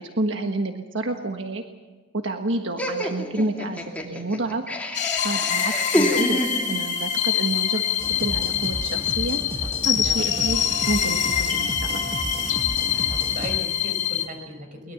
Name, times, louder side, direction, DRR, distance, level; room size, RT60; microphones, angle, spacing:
voice 1, 0.0-1.6 2.1-4.6 5.2-6.4 6.7-7.8 8.2-9.4 9.8-10.6 10.9-12.0, right 2 dB, 80° right, 4 dB, 1.4 m, -29 dB
Laughter, 2.8-7.0, equal, 10° left, 2.6 m, -27 dB
sound 1, 4.9-14.3, left 9 dB, 40° left, 4.4 m, -25 dB
sound 2, 8.0-13.6, right 1 dB, 30° right, 1.4 m, -33 dB
voice 2, 10.0-10.8 12.9-14.9, equal, 45° right, 5 dB, 4.9 m, -38 dB
23.0 x 21.0 x 7.2 m, 1.3 s
head